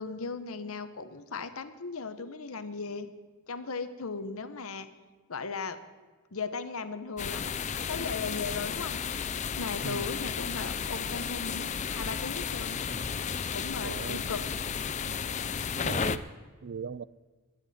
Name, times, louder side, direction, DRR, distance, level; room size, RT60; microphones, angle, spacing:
voice 1, 0.0-3.1 3.5-4.9 5.3-5.8 6.3-9.0 9.6-12.8 13.5-14.4, left 4 dB, 80° left, 1.0 m, -37 dB
sound 1, 7.2-16.2, left 6 dB, 35° left, 0.5 m, -33 dB
voice 2, 13.8-14.2 15.1-15.2 15.8-16.3 16.6-17.0, right 5 dB, 55° right, 0.4 m, -38 dB
22.5 x 10.5 x 4.3 m
head